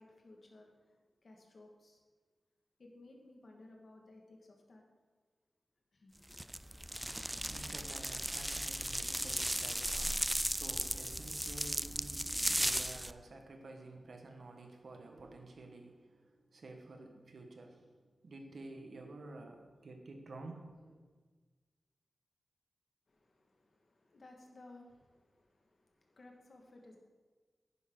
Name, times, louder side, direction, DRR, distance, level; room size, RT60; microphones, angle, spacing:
voice 1, 0.0-2.0 2.8-4.8 5.9-6.3 23.1-27.0, left 2 dB, 60° left, 1 dB, 1.8 m, -58 dB
sound 1, 6.3-13.1, right 1 dB, 5° right, 0.3 m, -36 dB
voice 2, 6.8-18.0 18.2-21.0, right 2 dB, 70° right, 3 dB, 1.5 m, -51 dB
11.0 x 9.9 x 3.9 m, 1.4 s
wide cardioid pair, 95°, 0 cm